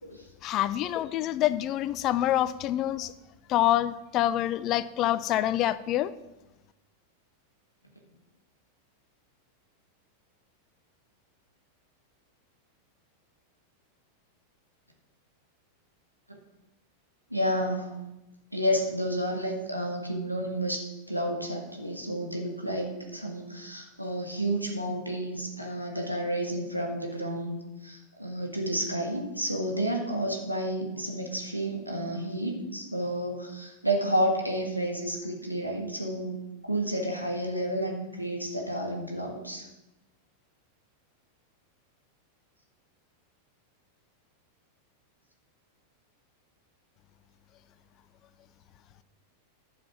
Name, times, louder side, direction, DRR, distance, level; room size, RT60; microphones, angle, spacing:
voice 1, 0.4-3.1 3.5-6.1, left 13 dB, 35° left, 16 dB, 0.5 m, -26 dB
voice 2, 17.3-17.9 18.5-36.4 36.6-39.7, equal, 90° right, 1 dB, 1.8 m, -31 dB
11.0 x 7.5 x 5.9 m, 0.97 s
figure-of-eight pair, 90°, 0 cm